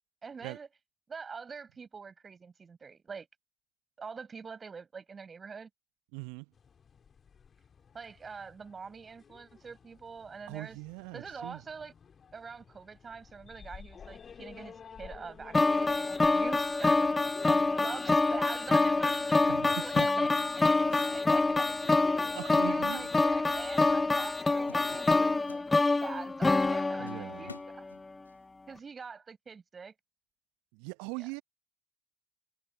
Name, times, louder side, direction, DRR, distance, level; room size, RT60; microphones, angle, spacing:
voice 1, 0.2-0.7 1.1-3.3 4.0-5.7 7.9-10.8 11.1-11.9 12.3-20.3 20.6-28.2 28.7-29.9 31.2-31.3, right 5 dB, 35° right, 7.6 m, -45 dB
voice 2, 6.1-6.5 10.5-11.6 19.4-20.3 20.9-21.1 22.3-23.1 24.9-25.0 27.0-27.5 30.7-31.4, right 32 dB, 70° right, 1.1 m, -41 dB
sound 1, 6.5-25.3, left 6 dB, 40° left, 2.6 m, -53 dB
sound 2, 15.5-27.7, left 3 dB, 20° left, 0.3 m, -26 dB
sound 3, 22.2-23.2 23.4-23.7 24.2-24.4 24.7-26.2 26.6-26.7 27.1-28.4, left 4 dB, 90° left, 7.3 m, -52 dB
figure-of-eight pair, 50°, 0 cm